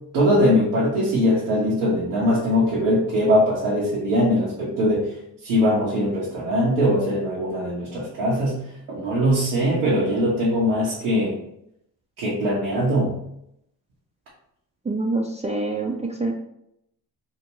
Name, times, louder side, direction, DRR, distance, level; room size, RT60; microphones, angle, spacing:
voice 1, 0.1-5.0 5.4-8.6 8.9-11.3 12.2-13.1, equal, 80° right, -6 dB, 0.9 m, -21 dB
voice 2, 14.9-16.3, right 2 dB, 15° right, -1 dB, 0.3 m, -26 dB
2.8 x 2.5 x 3.0 m, 0.76 s
hypercardioid pair, 45°, 49 cm